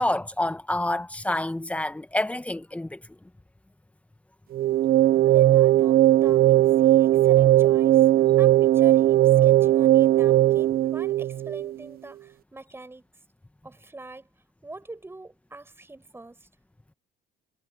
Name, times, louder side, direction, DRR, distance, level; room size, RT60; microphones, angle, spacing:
voice 1, 0.0-3.0, left 1 dB, 5° left, 1.3 m, -28 dB
Sad Pads, 4.5-11.7, right 13 dB, 50° right, 0.8 m, -18 dB
voice 2, 5.2-8.1 8.4-13.1 13.6-14.3 14.6-16.5, right 2 dB, 10° right, 5.6 m, -44 dB
cardioid pair, 115°, 19 cm